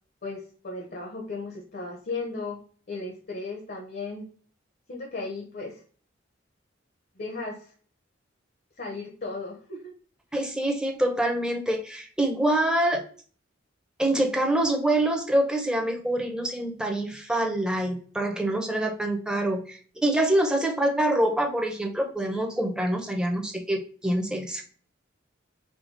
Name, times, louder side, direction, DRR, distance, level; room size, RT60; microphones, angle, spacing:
voice 1, 0.2-2.6 2.9-4.2 4.9-5.8 7.2-7.7 8.8-9.9, left 3 dB, 55° left, -1 dB, 1.1 m, -35 dB
voice 2, 10.3-13.0 14.0-24.6, right 1 dB, 5° right, 2 dB, 0.8 m, -25 dB
5.1 x 2.3 x 3.9 m, 0.43 s
head